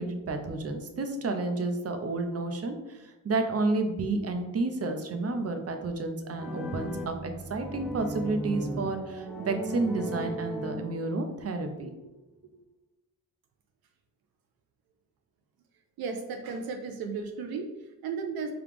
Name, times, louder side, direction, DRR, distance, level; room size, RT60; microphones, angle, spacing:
voice 1, 0.0-11.9, right 3 dB, 40° right, 6 dB, 0.7 m, -31 dB
sound 1, 6.4-11.3, right 1 dB, ahead, 0.6 m, -36 dB
voice 2, 16.0-18.5, right 5 dB, 80° right, 4 dB, 0.5 m, -35 dB
5.0 x 2.3 x 3.4 m, 1.1 s
cardioid pair, 60°, 36 cm